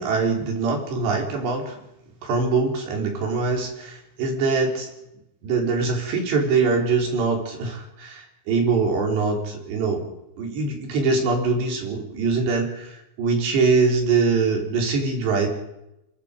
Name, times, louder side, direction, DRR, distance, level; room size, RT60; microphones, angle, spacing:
voice 1, 0.0-1.8 2.2-4.9 5.4-10.0 10.4-15.5, right 4 dB, 65° right, 2 dB, 5.8 m, -23 dB
25.5 x 22.5 x 5.1 m, 0.85 s
omnidirectional pair, 5.6 m